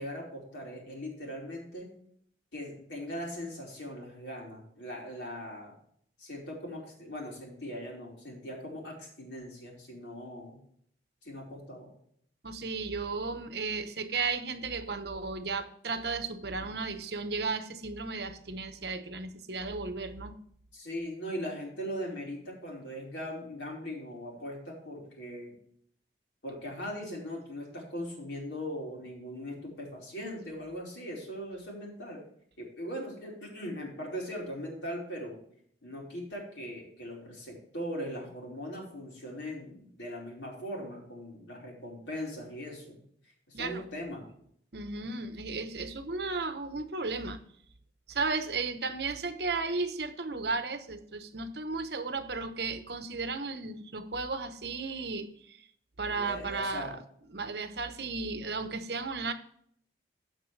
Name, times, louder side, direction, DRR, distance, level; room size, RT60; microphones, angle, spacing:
voice 1, 0.0-2.0 2.5-5.7 6.2-10.6 11.2-11.9 16.6-16.7 20.7-25.5 26.4-32.2 32.6-35.4 35.8-43.0 43.5-44.3 56.0-57.0, equal, 85° left, 4.7 m, -40 dB
voice 2, 12.4-20.3 43.5-43.8 44.7-47.4 48.1-55.7 56.0-57.0 57.3-59.3, right 4 dB, 65° right, 1.0 m, -34 dB
16.5 x 6.0 x 3.3 m
head